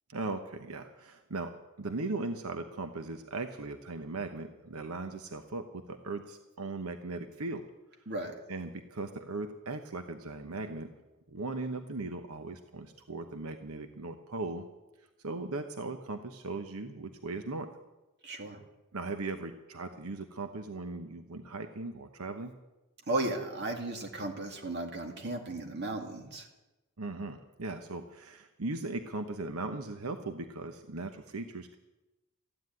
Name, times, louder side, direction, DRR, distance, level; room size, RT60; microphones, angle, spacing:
voice 1, 0.1-1.5 1.8-7.6 8.5-10.9 11.3-14.7 15.2-17.7 18.9-22.5 27.0-31.8, right 3 dB, 85° right, 7 dB, 0.9 m, -38 dB
voice 2, 18.2-18.6 23.1-26.5, right 2 dB, 50° right, 3 dB, 2.3 m, -35 dB
14.0 x 9.8 x 9.4 m, 1.0 s
head